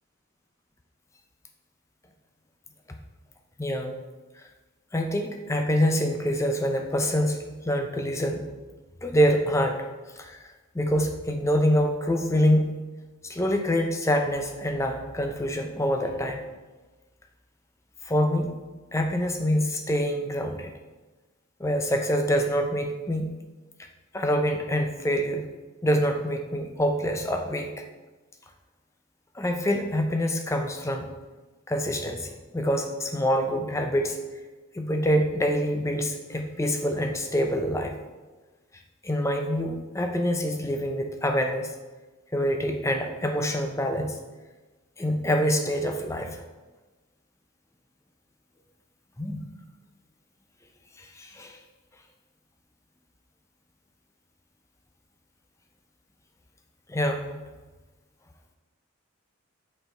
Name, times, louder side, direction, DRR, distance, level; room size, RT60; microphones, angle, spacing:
voice 1, 3.6-3.9 4.9-7.4 7.6-8.5 9.0-9.8 10.2-10.4 10.7-12.8 13.2-16.4 18.0-18.5 18.9-20.7 21.6-23.4 24.1-25.4 25.8-27.7 29.3-31.1 31.7-34.2 34.7-38.0 39.0-41.7 42.3-44.2 45.0-46.4 49.2-49.4 51.0-51.6 56.9-57.4, equal, 15° left, 4 dB, 0.5 m, -26 dB
5.5 x 4.4 x 4.3 m, 1.2 s
head